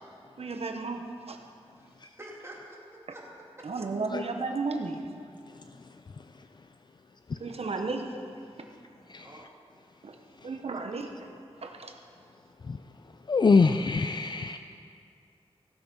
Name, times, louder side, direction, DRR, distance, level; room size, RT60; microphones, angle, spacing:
voice 1, 0.4-1.4 3.6-5.0 7.4-8.1 10.0-10.2 10.4-11.1 11.6-11.9, right 3 dB, 70° right, 4 dB, 1.1 m, -33 dB
voice 2, 1.8-3.2 3.6-3.7 9.2-9.5, right 1 dB, 25° right, -3 dB, 2.7 m, -47 dB
voice 3, 13.3-14.6, left 4 dB, 45° left, 8 dB, 0.4 m, -24 dB
17.0 x 8.0 x 5.5 m, 2.3 s
wide cardioid pair, 80°, 11 cm